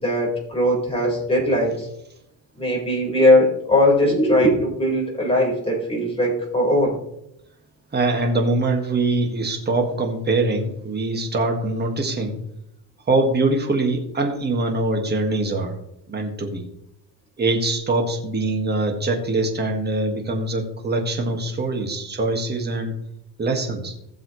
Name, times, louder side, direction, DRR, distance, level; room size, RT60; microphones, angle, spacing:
voice 1, 0.0-1.9 2.6-6.9, left 1 dB, 15° left, -3 dB, 4.4 m, -19 dB
voice 2, 7.9-12.4 13.1-15.7 16.1-16.6 17.4-22.9 23.4-23.9, right 2 dB, 25° right, 2 dB, 1.8 m, -23 dB
16.0 x 7.1 x 3.2 m, 0.78 s
cardioid pair, 140°, 41 cm